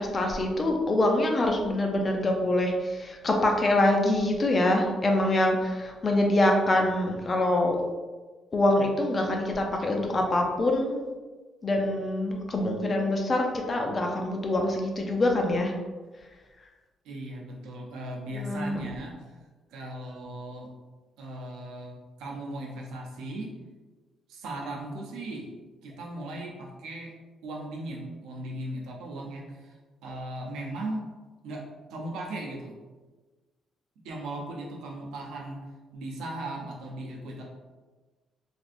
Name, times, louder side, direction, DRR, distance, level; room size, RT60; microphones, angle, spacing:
voice 1, 0.0-7.8 8.5-11.0 11.6-15.7 18.3-18.8, left 1 dB, 35° left, 2 dB, 0.5 m, -25 dB
voice 2, 17.0-19.4 19.7-20.7 21.2-23.6 24.3-25.5 25.8-27.1 27.4-31.1 31.4-32.7 34.0-35.7 35.9-37.4, right 1 dB, 85° right, -1 dB, 0.6 m, -37 dB
3.3 x 2.5 x 2.6 m, 1.3 s
cardioid pair, 90°, 0 cm